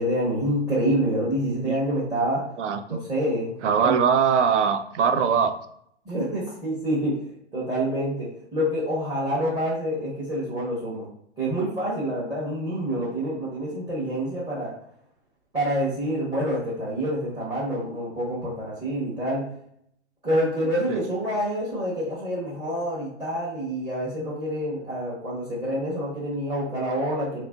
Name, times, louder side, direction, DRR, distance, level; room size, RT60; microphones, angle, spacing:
voice 1, 0.0-2.4 2.9-3.6 3.8-4.0 6.1-11.1 11.4-14.7 15.5-19.4 20.2-27.4, equal, 10° right, -7 dB, 0.6 m, -27 dB
voice 2, 2.6-3.0 3.6-5.5 20.9-21.1, right 7 dB, 85° right, 8 dB, 0.5 m, -22 dB
2.9 x 2.4 x 2.2 m, 0.69 s
hypercardioid pair, 130°, 35 cm